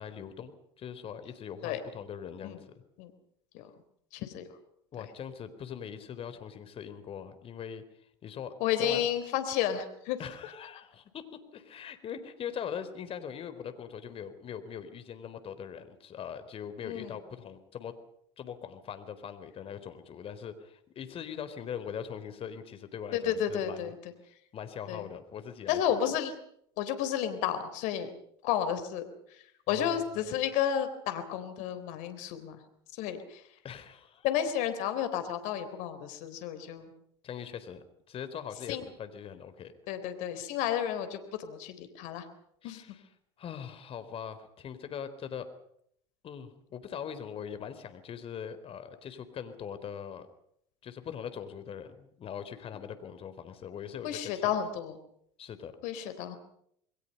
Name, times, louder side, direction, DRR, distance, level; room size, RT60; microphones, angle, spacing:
voice 1, 0.0-2.7 4.9-7.8 8.2-8.5 8.8-9.0 10.2-17.9 18.4-23.9 24.5-26.0 29.7-30.3 33.6-34.3 37.2-39.7 42.6-43.0 43.4-45.5 46.2-50.3 50.8-54.6 55.4-55.7 56.0-56.1, left 8 dB, 45° left, 11 dB, 4.1 m, -41 dB
voice 2, 4.1-4.4 8.6-10.2 16.8-17.1 23.1-23.9 24.9-25.1 25.7-26.3 26.8-28.1 28.4-32.6 33.0-33.4 34.2-36.9 38.7-38.8 39.9-42.3 42.6-42.8 54.0-55.0 55.8-56.4, left 9 dB, 65° left, 10 dB, 3.8 m, -32 dB
28.0 x 22.0 x 5.6 m, 0.70 s
hypercardioid pair, 80°, 14 cm